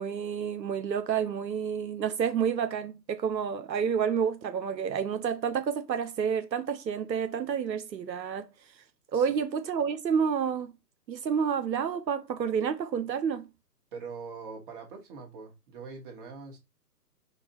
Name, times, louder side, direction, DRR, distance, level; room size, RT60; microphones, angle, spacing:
voice 1, 0.0-8.5 9.1-10.7 11.1-13.5, right 7 dB, 85° right, 0.7 m, -29 dB
voice 2, 13.9-16.6, right 5 dB, 30° right, 1.6 m, -43 dB
4.8 x 2.5 x 4.3 m
figure-of-eight pair, 140°, 49 cm